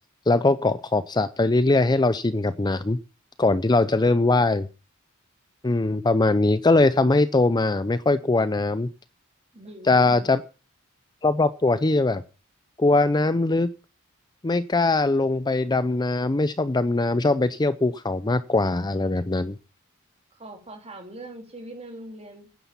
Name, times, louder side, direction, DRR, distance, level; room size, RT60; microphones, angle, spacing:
voice 1, 0.3-3.0 3.4-4.7 5.6-8.9 9.9-10.4 11.2-12.2 12.8-13.7 14.4-19.6, left 2 dB, 20° left, 14 dB, 0.5 m, -21 dB
voice 2, 9.5-10.3 20.3-22.5, right 1 dB, 30° right, 4 dB, 3.2 m, -42 dB
10.5 x 9.9 x 6.9 m, 0.35 s
head